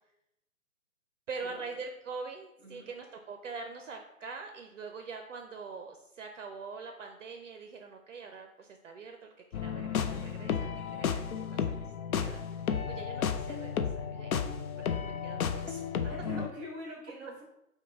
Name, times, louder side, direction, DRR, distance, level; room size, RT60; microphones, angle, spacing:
voice 1, 1.3-11.6 12.2-12.4 12.9-14.4 14.9-15.8, right 4 dB, 60° right, 4 dB, 0.5 m, -44 dB
voice 2, 2.6-2.9 14.9-15.0 16.0-17.4, equal, 10° right, -4 dB, 1.3 m, -44 dB
sound 1, 9.5-16.5, left 7 dB, 70° left, 0.5 m, -33 dB
4.9 x 2.2 x 3.4 m, 0.84 s
hypercardioid pair, 155°, 44 cm